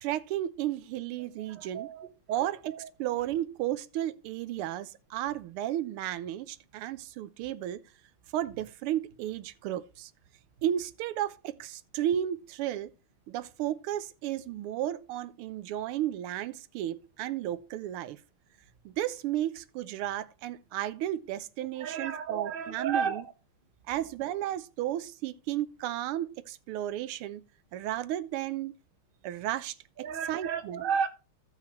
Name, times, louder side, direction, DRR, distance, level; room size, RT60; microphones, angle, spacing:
voice 1, 0.0-1.9 2.3-7.8 8.3-10.1 10.6-12.9 13.3-18.2 18.8-23.2 23.9-27.4 27.7-28.7 29.2-29.8 30.3-30.9, right 12 dB, 90° right, 1.6 m, -33 dB
voice 2, 1.4-2.5 21.8-23.2 30.0-31.1, right 6 dB, 40° right, 0.8 m, -33 dB
15.5 x 5.7 x 3.0 m
omnidirectional pair, 2.4 m